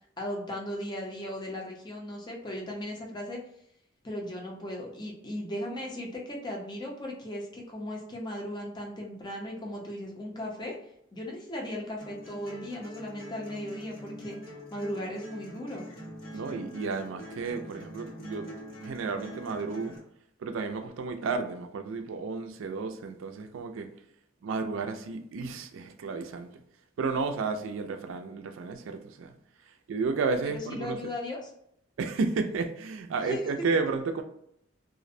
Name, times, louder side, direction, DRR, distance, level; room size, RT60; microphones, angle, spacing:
voice 1, 0.2-3.4 4.0-10.8 11.1-14.4 14.7-15.9 30.5-31.5 33.2-33.4, left 1 dB, 20° left, 0.5 m, -37 dB
sound 1, 12.0-20.0, equal, 90° left, 1.2 m, -44 dB
voice 2, 16.3-18.5 18.8-20.0 20.4-23.9 24.4-26.5 27.0-29.3 29.9-31.0 32.0-34.2, right 4 dB, 70° right, 0.3 m, -32 dB
2.4 x 2.0 x 2.6 m
head